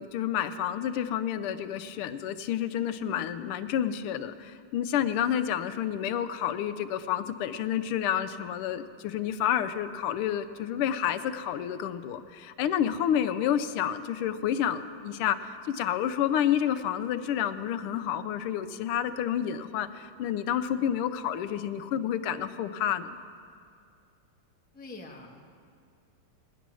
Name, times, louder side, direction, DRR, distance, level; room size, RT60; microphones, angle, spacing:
voice 1, 0.0-23.2, left 10 dB, 85° left, 11 dB, 1.5 m, -29 dB
voice 2, 24.7-25.4, left 2 dB, 5° left, 0 dB, 0.8 m, -44 dB
18.0 x 10.0 x 6.2 m, 2.3 s
omnidirectional pair, 2.4 m